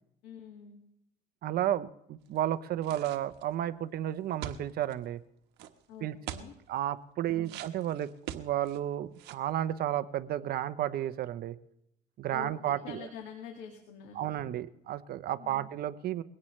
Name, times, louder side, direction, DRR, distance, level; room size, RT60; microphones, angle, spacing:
voice 1, 0.2-0.8 5.9-6.5 7.3-7.6 12.3-14.5 15.4-15.7, left 7 dB, 90° left, 2 dB, 2.2 m, -47 dB
voice 2, 1.4-5.2 6.0-6.1 6.7-11.6 12.2-13.1 14.1-16.2, right 12 dB, 65° right, 13 dB, 0.8 m, -32 dB
sound 1, 2.8-3.5 4.4-4.9 5.6-5.7 6.3-6.5 7.4-8.8 9.1-9.5, right 11 dB, 85° right, 1.3 m, -42 dB
22.0 x 17.5 x 3.3 m, 0.80 s
cardioid pair, 110°, 17 cm